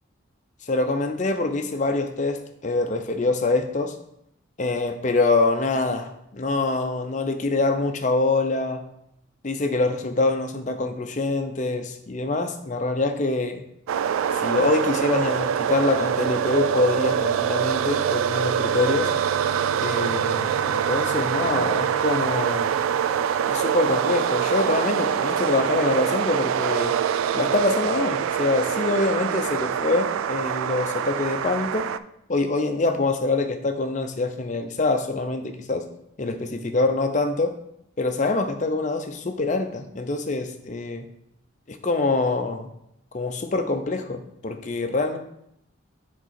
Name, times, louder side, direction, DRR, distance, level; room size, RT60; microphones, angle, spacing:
voice 1, 0.7-3.9 4.6-8.8 9.4-13.6 14.4-19.1 19.8-22.8 23.5-27.0 27.3-31.9 32.3-35.9 36.2-37.6 38.0-41.1 41.7-42.7 43.1-45.2, left 3 dB, 35° left, 7 dB, 0.5 m, -25 dB
sound 1, 13.9-32.0, right 8 dB, 85° right, 0.3 m, -24 dB
7.4 x 3.9 x 4.3 m, 0.78 s
head